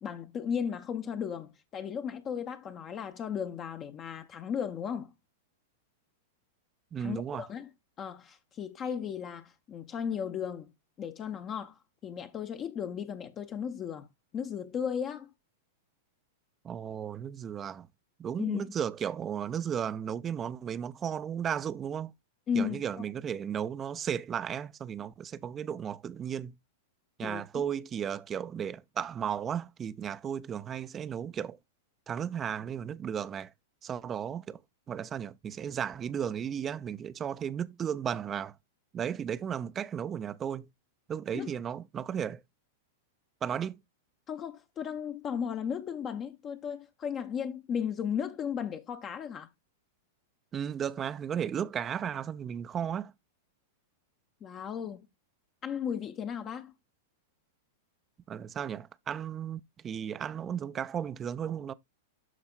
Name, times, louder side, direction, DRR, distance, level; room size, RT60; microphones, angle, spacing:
voice 1, 0.0-5.1 7.0-7.7 8.0-10.7 11.0-14.1 14.3-15.3 18.4-18.7 22.5-23.0 27.2-27.6 41.3-41.5 44.3-49.5 54.4-55.1 55.6-56.7, left 7 dB, 30° left, 0.7 m, -35 dB
voice 2, 6.9-7.4 16.6-17.9 18.2-22.1 22.5-26.5 27.2-31.6 32.1-33.5 33.8-34.6 34.9-38.5 38.9-40.7 41.1-42.4 43.4-43.8 50.5-53.1 58.3-61.7, right 8 dB, 25° right, 0.5 m, -34 dB
12.5 x 4.4 x 2.3 m
figure-of-eight pair, 95°, 0 cm